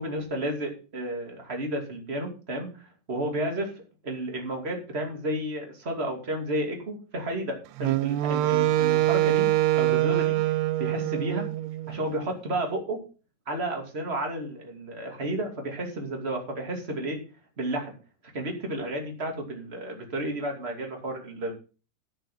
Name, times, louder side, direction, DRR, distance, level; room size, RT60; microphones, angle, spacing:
voice 1, 0.0-2.7 3.1-3.7 4.0-9.5 9.8-10.4 10.8-11.5 11.9-13.0 13.5-17.2 17.6-17.9 18.3-21.5, right 1 dB, 20° right, 1 dB, 1.9 m, -32 dB
Wind instrument woodwind instrument, 7.8-12.0, right 15 dB, 85° right, 2.7 m, -24 dB
12.5 x 6.8 x 5.5 m, 0.36 s
omnidirectional pair, 4.7 m